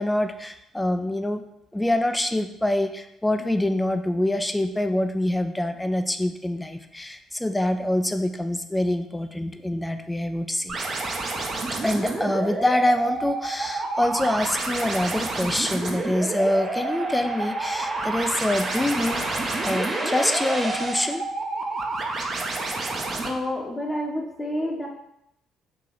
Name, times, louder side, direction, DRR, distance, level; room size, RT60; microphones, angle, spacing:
voice 1, 0.0-1.4 1.7-10.8 11.8-21.2, left 1 dB, 10° left, 8 dB, 0.5 m, -25 dB
sound 1, 10.7-23.3, right 3 dB, 45° right, 0.8 m, -29 dB
sound 2, 13.3-21.1, right 1 dB, 20° right, 1.2 m, -35 dB
voice 2, 23.2-24.9, left 1 dB, 30° left, -2 dB, 1.1 m, -29 dB
4.7 x 2.8 x 4.0 m, 0.81 s
hypercardioid pair, 50°, 0 cm